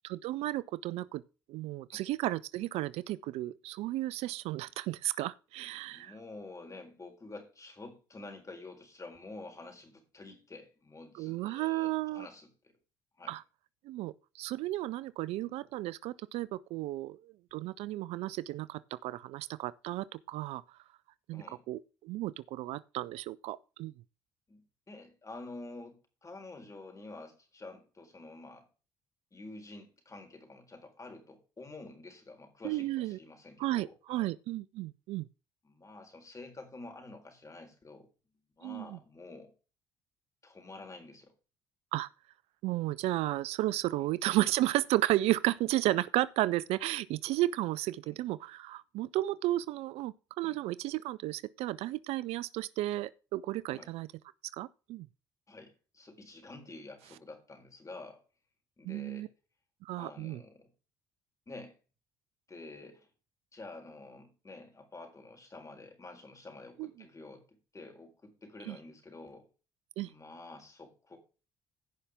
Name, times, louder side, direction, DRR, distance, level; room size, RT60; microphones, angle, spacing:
voice 1, 0.0-1.2 1.5-6.1 11.2-12.3 13.3-13.4 13.9-20.6 21.3-23.9 32.6-33.2 33.6-35.3 38.6-39.0 41.9-42.1 42.6-54.1 54.6-55.1 58.8-59.3 59.8-60.4 66.8-66.9 68.7-68.8 70.0-70.1, right 16 dB, 65° right, 0.4 m, -33 dB
voice 2, 5.9-12.7 13.2-13.4 21.3-21.6 24.5-28.7 29.3-34.3 35.6-38.1 38.6-39.5 40.4-41.3 43.0-43.2 44.0-44.1 48.0-48.2 50.4-50.6 53.7-53.9 55.5-58.2 58.8-59.3 59.9-60.7 61.5-61.8 62.5-63.1 63.5-69.5 70.0-71.2, left 2 dB, 30° left, 4.2 m, -49 dB
15.5 x 5.7 x 3.6 m
hypercardioid pair, 55°, 11 cm